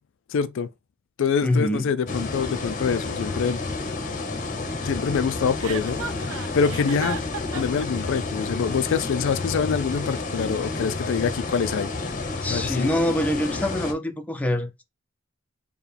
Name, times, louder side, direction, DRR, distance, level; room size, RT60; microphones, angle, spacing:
voice 1, 0.3-0.7 1.2-3.6 4.8-6.0 6.5-7.2 7.5-11.9 12.5-12.9, left 6 dB, 65° left, 0.4 m, -25 dB
voice 2, 1.4-1.9 12.4-14.8, left 1 dB, 5° left, 0.5 m, -25 dB
sound 1, 2.1-13.9, left 3 dB, 40° left, 0.8 m, -30 dB
Chuckle chortle, 5.6-7.9, right 6 dB, 80° right, 0.4 m, -34 dB
4.7 x 2.2 x 3.2 m
head